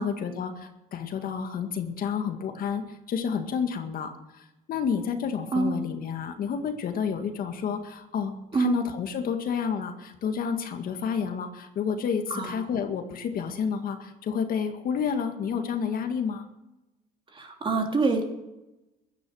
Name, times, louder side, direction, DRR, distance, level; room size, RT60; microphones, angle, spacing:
voice 1, 0.0-16.5, left 7 dB, 60° left, 6 dB, 1.9 m, -30 dB
voice 2, 17.3-18.2, right 4 dB, 30° right, 2 dB, 3.2 m, -25 dB
16.0 x 10.5 x 6.3 m, 0.98 s
cardioid pair, 110°, 17 cm